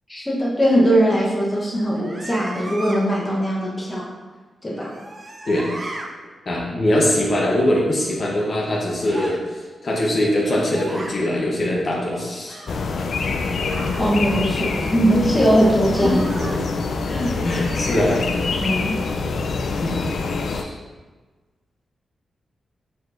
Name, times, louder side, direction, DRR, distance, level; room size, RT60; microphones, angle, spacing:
voice 1, 0.1-4.1 4.6-4.9 14.0-16.2 17.1-17.4 18.6-19.0, equal, 15° left, -4 dB, 0.9 m, -20 dB
sound 1, 1.9-3.0 4.7-6.1 9.0-9.4 10.3-11.1 12.5-12.8 13.6-14.1 15.8-16.6 17.9-18.4, right 1 dB, 35° right, 0.5 m, -36 dB
voice 2, 6.5-12.6 16.5-16.6 17.4-18.3 19.8-20.0 20.4-20.8, left 1 dB, 45° left, -3 dB, 0.8 m, -22 dB
sound 2, 12.7-20.6, left 4 dB, 65° left, 0.3 m, -25 dB
4.7 x 4.1 x 2.5 m, 1.3 s
wide cardioid pair, 115°, 0 cm